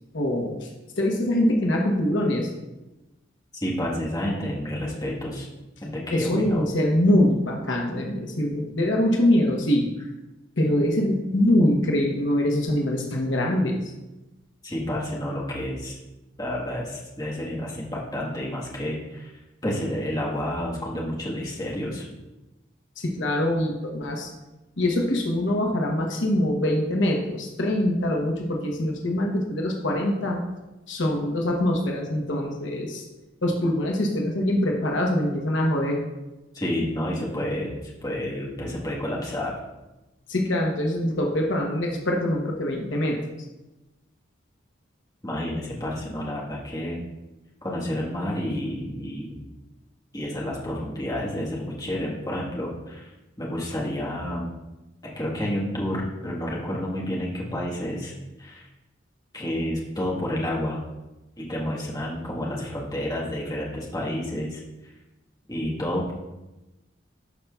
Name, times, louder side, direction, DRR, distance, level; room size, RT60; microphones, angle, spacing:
voice 1, 0.1-0.7 1.0-2.5 6.1-9.8 10.6-13.8 23.0-24.3 24.8-30.4 30.9-33.0 33.4-36.0 40.3-43.2, left 1 dB, 70° left, 0 dB, 1.0 m, -23 dB
voice 2, 3.6-5.5 5.8-6.6 14.6-16.0 16.4-19.3 19.6-22.1 36.5-39.5 45.2-47.0 47.6-49.4 50.1-53.1 53.4-54.5 55.0-58.1 58.4-58.7 59.3-60.8 61.4-64.9 65.5-66.1, left 1 dB, 20° left, -4 dB, 1.4 m, -30 dB
12.0 x 5.6 x 2.4 m, 1.0 s
head